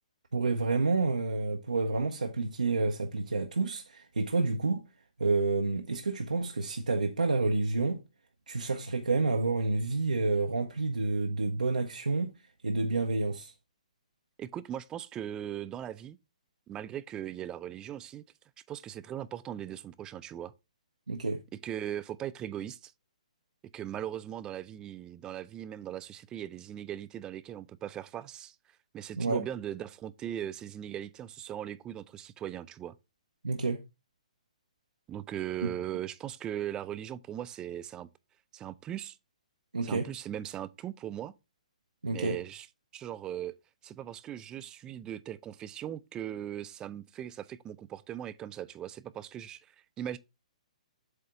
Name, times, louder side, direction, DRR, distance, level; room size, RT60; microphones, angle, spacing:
voice 1, 0.3-4.8 5.2-8.0 8.5-12.3 12.6-13.5 21.1-21.4 29.2-29.4 33.4-33.8 35.6-35.7 39.7-40.1 42.0-42.4, right 3 dB, 90° right, 0.7 m, -29 dB
voice 2, 14.4-16.2 16.7-18.2 18.7-20.5 21.6-22.9 23.7-28.5 28.9-33.0 35.1-38.1 38.5-39.2 39.8-41.3 42.1-42.7 42.9-43.5 43.8-49.6 50.0-50.2, right 11 dB, 20° right, 0.4 m, -39 dB
7.8 x 2.8 x 4.7 m
hypercardioid pair, 130°, 4 cm